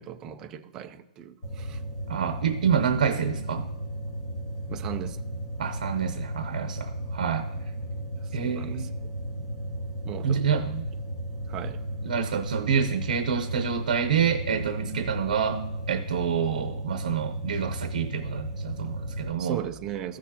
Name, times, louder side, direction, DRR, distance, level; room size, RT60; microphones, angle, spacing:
voice 1, 0.0-1.8 2.2-2.3 4.7-5.2 8.2-8.9 10.0-10.6 11.5-11.8 19.4-20.2, right 10 dB, 15° right, 0.3 m, -37 dB
sound 1, 1.4-19.3, equal, 25° left, 2.3 m, -34 dB
voice 2, 2.1-3.7 5.6-7.5 8.3-8.9 10.2-10.9 12.0-19.6, right 7 dB, 70° right, 0.7 m, -27 dB
15.0 x 6.2 x 2.8 m
hypercardioid pair, 180°, 4 cm